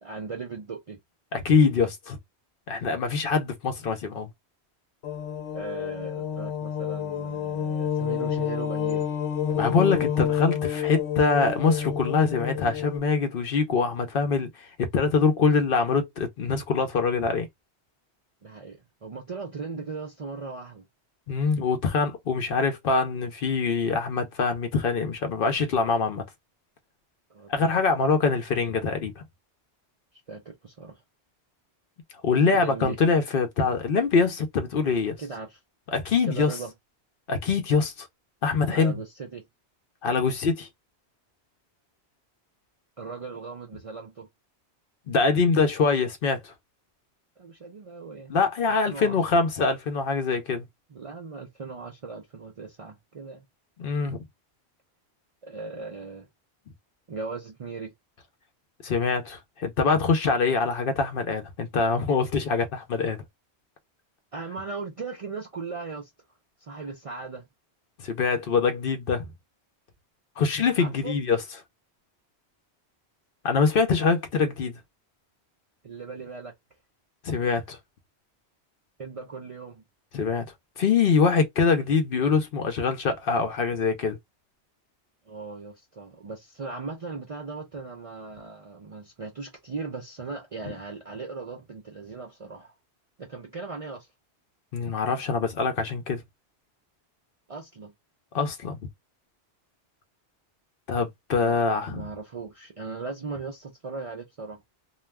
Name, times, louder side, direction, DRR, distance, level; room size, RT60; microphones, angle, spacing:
voice 1, 0.0-1.0 5.5-9.1 18.4-20.9 27.3-27.8 30.3-31.0 32.5-33.0 33.7-33.8 35.2-35.6 36.3-36.7 38.7-39.4 43.0-44.3 47.4-48.3 48.7-49.2 50.9-53.4 55.4-56.3 57.1-57.9 64.3-66.1 66.6-67.5 70.8-71.2 75.8-76.5 79.0-79.8 85.3-92.7 93.2-94.1 97.5-97.9 101.4-104.6, right 4 dB, 50° right, 0.4 m, -38 dB
voice 2, 1.3-2.2 2.7-4.3 9.6-17.5 21.3-26.2 27.5-29.2 32.2-35.2 35.9-36.5 37.3-38.1 38.4-39.0 40.0-40.7 45.1-46.5 48.3-50.6 53.8-54.2 58.8-63.2 68.0-69.3 70.4-71.4 73.4-74.8 77.2-77.8 80.1-80.5 80.8-84.2 94.7-96.2 98.3-98.8 100.9-102.0, left 4 dB, 60° left, 0.8 m, -24 dB
sound 1, 5.0-13.0, left 8 dB, 90° left, 0.9 m, -29 dB
2.3 x 2.2 x 3.2 m
omnidirectional pair, 1.1 m